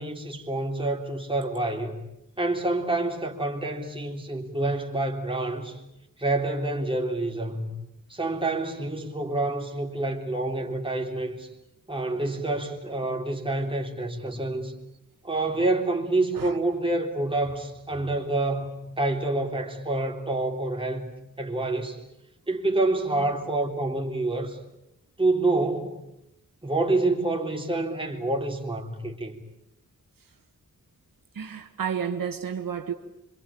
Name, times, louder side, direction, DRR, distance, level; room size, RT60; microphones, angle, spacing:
voice 1, 0.0-2.0 2.4-5.8 6.2-7.7 8.1-11.5 11.9-14.7 15.2-21.0 21.4-22.0 22.5-24.6 25.2-26.0 26.6-29.4, right 2 dB, 15° right, 3.5 m, -27 dB
voice 2, 31.3-32.9, right 7 dB, 75° right, 1.7 m, -31 dB
26.0 x 24.5 x 8.7 m
wide cardioid pair, 145°, 34 cm